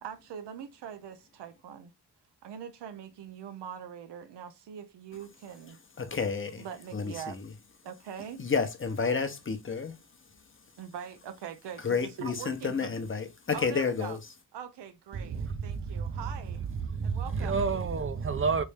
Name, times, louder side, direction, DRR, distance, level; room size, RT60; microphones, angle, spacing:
voice 1, 0.0-1.9 2.4-5.8 6.6-7.4 7.8-8.4 10.8-12.9 13.5-14.2 14.5-16.6 17.0-17.5, right 8 dB, 90° right, 0.6 m, -42 dB
voice 2, 6.0-6.7 6.9-7.5 8.4-10.0 11.8-14.2, left 5 dB, 30° left, 0.8 m, -30 dB
voice 3, 15.1-16.2 16.6-18.6, right 5 dB, 35° right, 0.5 m, -30 dB
3.3 x 2.6 x 3.3 m
cardioid pair, 85°, 40 cm